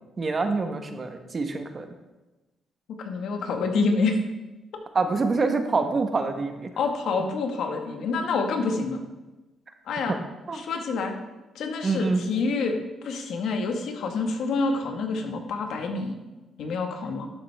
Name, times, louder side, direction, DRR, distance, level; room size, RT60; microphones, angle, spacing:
voice 1, 0.2-1.9 4.9-6.7 10.1-10.6 11.8-12.2, right 3 dB, 35° right, 7 dB, 1.0 m, -26 dB
voice 2, 3.0-4.2 6.8-9.0 9.9-10.2 10.5-11.1 11.5-12.8 13.0-16.1 16.6-17.3, left 4 dB, 75° left, 4 dB, 1.4 m, -27 dB
12.0 x 7.3 x 3.4 m, 1.1 s
cardioid pair, 90°, 0 cm